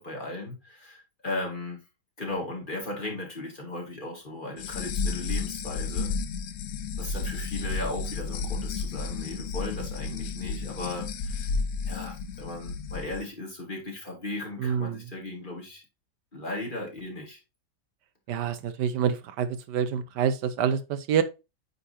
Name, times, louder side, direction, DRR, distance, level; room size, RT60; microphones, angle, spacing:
voice 1, 0.0-1.8 2.2-6.2 7.0-11.5 11.9-15.8 16.3-17.4, left 2 dB, 30° left, 2.2 m, -36 dB
sound 1, 4.6-13.2, left 4 dB, 60° left, 0.8 m, -32 dB
voice 2, 14.6-15.0 18.3-21.2, right 8 dB, 80° right, 1.3 m, -27 dB
9.1 x 4.0 x 2.7 m
omnidirectional pair, 1.8 m